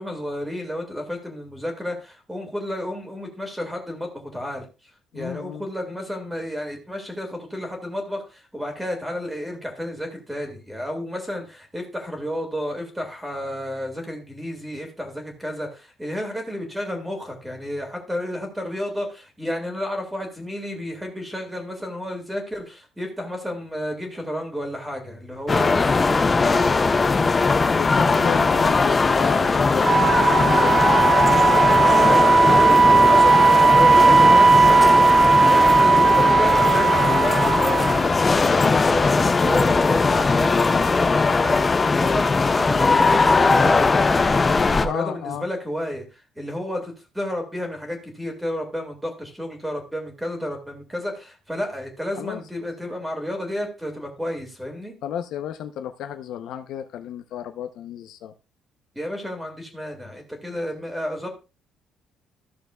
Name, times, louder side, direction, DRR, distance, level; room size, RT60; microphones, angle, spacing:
voice 1, 0.0-4.7 5.1-27.2 31.8-35.1 35.5-43.9 44.4-55.0 59.0-61.3, left 1 dB, 5° right, 1.9 m, -31 dB
voice 2, 5.1-5.7 25.5-25.8 27.6-31.1 35.9-36.1 44.8-45.5 52.2-52.4 55.0-58.3, left 9 dB, 65° left, 0.6 m, -32 dB
sound 1, 25.5-44.9, left 4 dB, 15° left, 0.4 m, -19 dB
Wind instrument woodwind instrument, 29.8-38.1, right 4 dB, 40° right, 0.8 m, -16 dB
14.0 x 6.6 x 2.3 m
cardioid pair, 180°, 0 cm